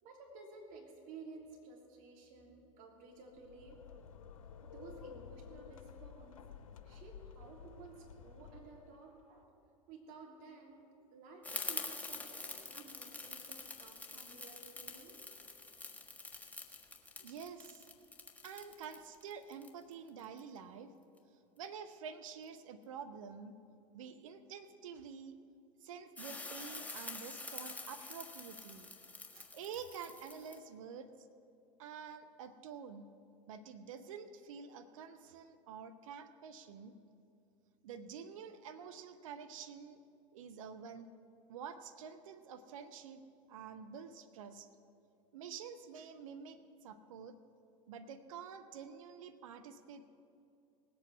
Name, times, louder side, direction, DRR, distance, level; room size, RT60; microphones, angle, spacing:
voice 1, 0.0-3.8 4.6-6.4 6.8-9.6 9.9-10.9 11.1-15.2, right 4 dB, 55° right, 0 dB, 3.1 m, -54 dB
sound 1, 3.2-9.2, left 7 dB, 80° left, 0.6 m, -53 dB
sound 2, 11.4-20.4 26.2-30.6, left 3 dB, 10° left, 1.5 m, -46 dB
voice 2, 17.2-17.9 18.4-20.9 21.6-23.6 23.9-25.4 25.8-28.9 29.3-31.3 31.8-33.0 33.5-37.0 37.8-40.0 40.3-41.1 41.5-43.2 43.5-44.7 45.3-47.4 47.9-50.1, right 6 dB, 75° right, 9 dB, 0.8 m, -48 dB
18.5 x 8.4 x 6.1 m, 2.5 s
hypercardioid pair, 80°, 17 cm